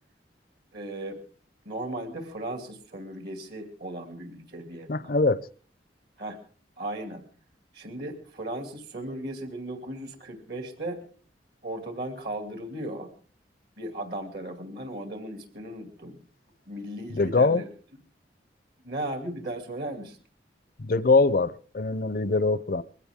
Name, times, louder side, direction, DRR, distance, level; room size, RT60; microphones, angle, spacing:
voice 1, 0.7-1.2 1.6-5.2 6.2-6.4 6.8-7.2 7.7-11.0 11.6-13.1 13.8-16.2 16.7-17.7 18.8-20.2, right 1 dB, 60° right, 2.6 m, -36 dB
voice 2, 4.9-5.5 17.1-17.6 20.8-22.8, left 3 dB, 50° left, 0.6 m, -23 dB
21.5 x 16.0 x 3.6 m
head